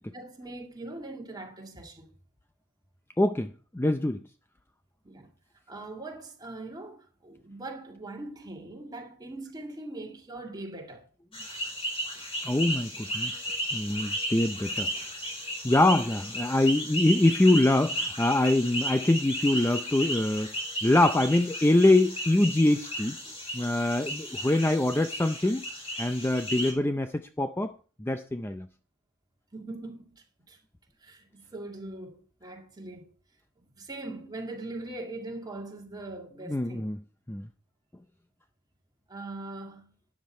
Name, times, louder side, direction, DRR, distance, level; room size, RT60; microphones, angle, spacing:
voice 1, 0.1-2.1 5.0-5.3 5.7-11.0 29.5-30.6 31.0-33.1 33.8-36.9 39.1-39.9, right 2 dB, 20° right, 2.1 m, -41 dB
voice 2, 3.2-4.2 12.4-13.3 13.7-14.9 15.6-20.5 20.8-25.6 26.0-27.7 28.0-28.7 36.4-37.0 37.3-37.5, left 1 dB, 10° left, 0.5 m, -24 dB
sound 1, 11.3-26.7, equal, 25° left, 4.8 m, -34 dB
12.5 x 9.5 x 4.3 m
head